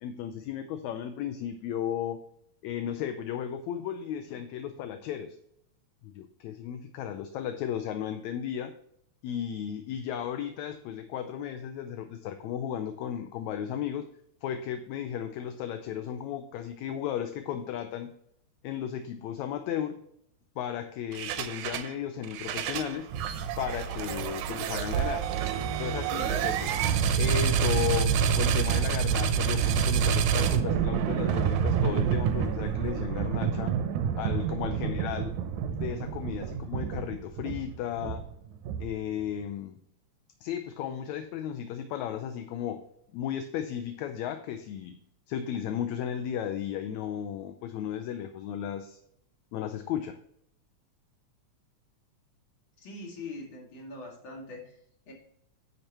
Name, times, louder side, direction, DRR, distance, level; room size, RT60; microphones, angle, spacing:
voice 1, 0.0-2.2 2.6-5.4 6.0-8.7 9.2-14.1 14.4-18.1 18.6-20.0 20.6-23.1 23.6-25.3 25.7-26.8 27.2-33.7 34.2-35.3 35.7-38.2 38.8-39.8 40.4-42.8 43.1-45.0 45.3-49.0 49.5-50.2, left 9 dB, 80° left, 8 dB, 1.9 m, -34 dB
sound 1, 21.1-21.9 22.2-39.2, right 7 dB, 85° right, 2.2 m, -28 dB
voice 2, 52.8-54.8 55.1-55.2, left 2 dB, 45° left, -1 dB, 2.9 m, -42 dB
10.0 x 6.6 x 3.0 m, 0.71 s
omnidirectional pair, 3.3 m